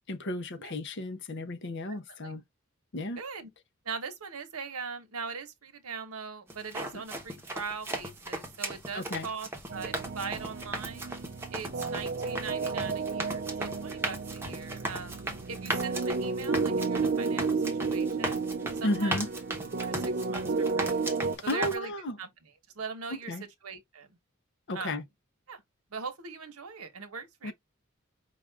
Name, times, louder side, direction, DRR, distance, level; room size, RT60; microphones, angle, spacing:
voice 1, 0.1-2.4 2.9-3.2 6.9-7.0 8.9-9.3 18.8-19.3 21.5-22.2 23.1-23.4 24.7-25.0 27.4-27.5, left 1 dB, 50° left, 0.6 m, -33 dB
voice 2, 1.9-2.3 3.2-3.5 3.8-11.1 11.5-15.2 15.5-18.4 18.7-19.2 19.8-21.0 21.4-21.9 22.2-22.3 22.7-23.3 23.6-24.2 24.7-25.0 25.5-25.6 25.9-27.5, right 5 dB, 85° right, 1.0 m, -40 dB
sound 1, 6.5-21.7, right 1 dB, 10° right, 0.9 m, -37 dB
sound 2, 9.7-21.3, right 4 dB, 45° right, 0.5 m, -32 dB
5.0 x 2.4 x 3.4 m
head